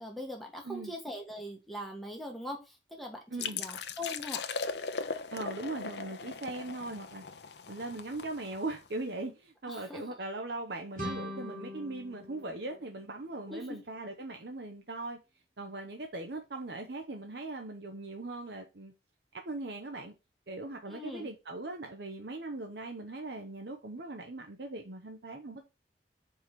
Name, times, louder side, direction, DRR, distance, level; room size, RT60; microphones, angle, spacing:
voice 1, 0.0-4.5 9.7-10.1 13.5-13.8 20.9-21.3, left 1 dB, ahead, 1.4 m, -41 dB
voice 2, 3.3-3.6 5.3-7.2 7.7-15.2 15.6-18.9 19.3-20.1 20.5-25.6, right 2 dB, 70° right, 0.9 m, -40 dB
sound 1, 3.4-8.9, left 5 dB, 75° left, 0.7 m, -39 dB
sound 2, 11.0-13.7, equal, 50° right, 1.6 m, -42 dB
4.9 x 4.7 x 5.8 m
head